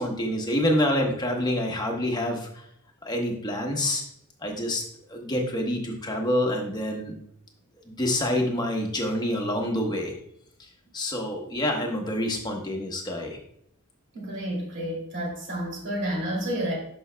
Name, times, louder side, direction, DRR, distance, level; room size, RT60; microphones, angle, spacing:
voice 1, 0.0-2.5 3.0-4.0 4.4-4.8 5.1-7.1 7.9-10.1 10.9-13.4, left 1 dB, 20° left, 1 dB, 1.1 m, -27 dB
voice 2, 14.1-16.8, equal, 55° right, -2 dB, 2.7 m, -30 dB
11.0 x 5.4 x 2.3 m, 0.71 s
head